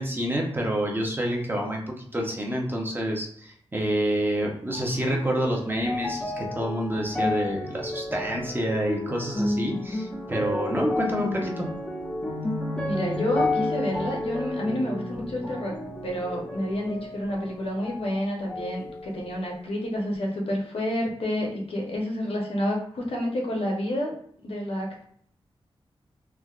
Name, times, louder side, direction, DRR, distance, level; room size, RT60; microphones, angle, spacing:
voice 1, 0.0-11.7, right 1 dB, 20° right, -1 dB, 0.7 m, -28 dB
sound 1, 4.7-18.2 18.5-19.4 20.1-20.2, left 1 dB, 10° left, 0.6 m, -31 dB
voice 2, 12.8-15.8 16.0-25.0, left 1 dB, 70° left, -1 dB, 0.8 m, -29 dB
3.3 x 2.2 x 2.4 m, 0.62 s
wide cardioid pair, 75°, 10 cm